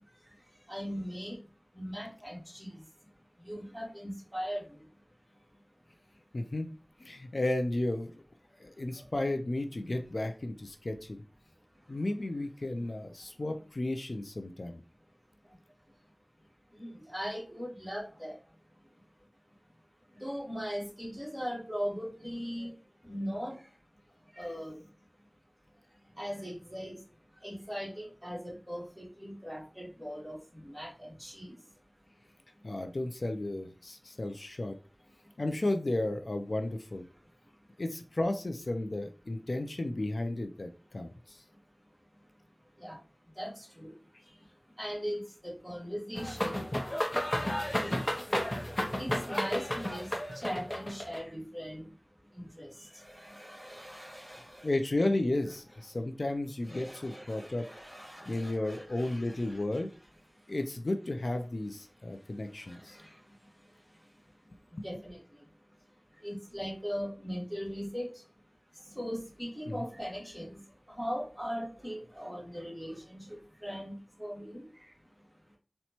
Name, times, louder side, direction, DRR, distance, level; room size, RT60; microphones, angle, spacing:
voice 1, 0.7-1.4 1.7-2.8 3.5-4.6 16.8-18.3 20.2-22.7 23.0-23.6 24.4-24.7 26.2-26.9 27.4-30.4 30.6-31.5 42.8-43.0 43.4-43.9 44.8-46.6 47.8-48.0 49.0-51.9 52.3-52.7 52.9-54.7 56.7-59.8 62.9-63.1 64.8-65.2 66.2-68.1 68.9-70.6 71.0-73.2 73.6-74.7, equal, 10° right, -3 dB, 1.4 m, -39 dB
voice 2, 6.3-6.7 7.0-8.2 8.6-11.2 11.9-14.8 32.6-34.8 35.4-37.1 37.8-41.4 54.6-57.7 58.3-59.9 60.5-63.0 69.7-69.8, left 2 dB, 70° left, 6 dB, 0.3 m, -33 dB
sound 1, 46.2-51.2, left 1 dB, 35° left, 0.6 m, -32 dB
4.1 x 2.1 x 2.9 m, 0.37 s
wide cardioid pair, 45°, 0 cm